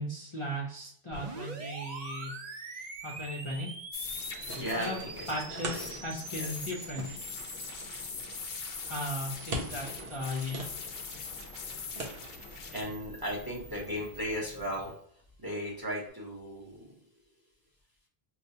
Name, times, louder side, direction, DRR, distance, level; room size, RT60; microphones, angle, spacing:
voice 1, 0.0-2.3 3.0-3.7 4.8-5.0 5.3-7.1 8.9-10.6, equal, 35° left, -4 dB, 0.7 m, -36 dB
sound 1, 1.1-15.0, right 4 dB, 50° right, 0.6 m, -46 dB
sound 2, 3.9-12.8, left 6 dB, 70° left, 0.7 m, -42 dB
sound 3, 4.0-14.9, right 1 dB, 65° right, 0.9 m, -44 dB
voice 2, 4.6-5.9 6.3-6.5 12.7-14.9 15.4-16.8, equal, 20° right, -4 dB, 0.9 m, -36 dB
4.7 x 2.2 x 2.7 m, 0.63 s
omnidirectional pair, 1.0 m